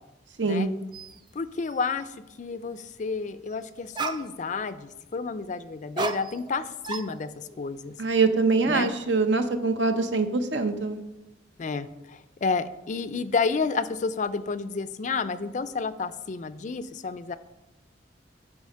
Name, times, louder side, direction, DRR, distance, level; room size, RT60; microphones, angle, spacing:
voice 1, 0.4-0.7 8.0-11.0, right 4 dB, 75° right, 7 dB, 0.8 m, -24 dB
sound 1, 0.9-1.2 1.6-2.0 3.5-3.6 3.9-4.7 6.0-6.6 6.8-7.6, right 4 dB, 25° right, 0.4 m, -34 dB
voice 2, 1.3-2.1 2.4-7.9 8.7-8.9 11.6-17.4, left 4 dB, 40° left, 13 dB, 0.4 m, -30 dB
8.3 x 5.0 x 6.4 m, 0.98 s
head